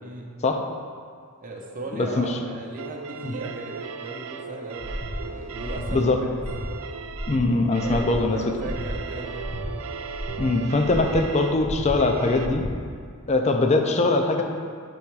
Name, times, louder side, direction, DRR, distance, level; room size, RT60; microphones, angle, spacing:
voice 1, 1.4-6.3 7.8-9.4, right 2 dB, 40° right, -1 dB, 0.8 m, -36 dB
voice 2, 2.0-2.4 3.2-3.4 5.9-6.2 7.3-8.4 10.4-12.6 13.3-14.4, left 2 dB, 30° left, 4 dB, 0.4 m, -22 dB
sound 1, 2.8-12.5, right 6 dB, 65° right, 0.3 m, -37 dB
Breathing, 4.8-5.2 5.5-5.9 6.3-6.6 7.0-7.4 7.8-8.1 8.5-8.9 9.3-9.6 10.0-10.4 10.8-11.2 11.5-11.9 12.3-12.7, equal, 65° left, 1.2 m, -35 dB
7.0 x 3.4 x 4.7 m, 2.1 s
head